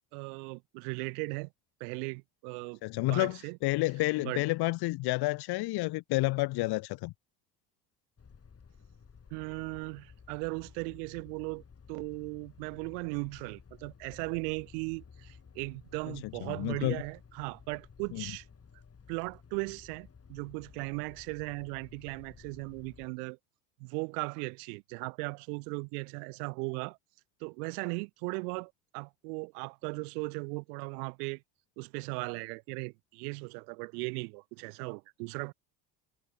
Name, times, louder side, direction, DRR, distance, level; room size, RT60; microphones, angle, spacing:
voice 1, 0.1-1.5 1.8-2.8 3.1-3.6 4.2-4.4 9.3-11.6 11.9-18.5 19.1-23.4 23.8-27.0 27.4-31.4 31.8-35.5, right 35 dB, 70° right, 1.2 m, -37 dB
voice 2, 2.8-7.1 16.1-17.0 18.1-18.2, left 20 dB, 55° left, 0.8 m, -30 dB
sound 1, 8.2-23.1, left 6 dB, 30° left, 7.2 m, -55 dB
hypercardioid pair, 70°, 46 cm